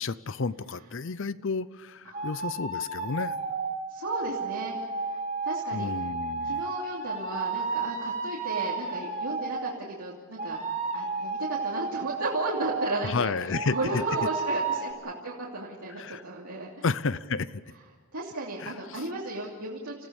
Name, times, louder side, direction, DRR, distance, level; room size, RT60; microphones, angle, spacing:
voice 1, 0.0-3.3 5.7-6.6 13.0-14.0 15.9-16.2 16.8-17.5 18.6-19.1, left 4 dB, 55° left, 16 dB, 0.6 m, -31 dB
sound 1, 2.1-9.8 10.4-13.1 13.5-14.9, right 4 dB, 30° right, 2.4 m, -32 dB
voice 2, 3.9-5.9 6.4-10.6 10.9-16.7 18.1-20.1, right 2 dB, 85° right, -4 dB, 2.9 m, -34 dB
29.0 x 16.0 x 7.1 m, 1.5 s
head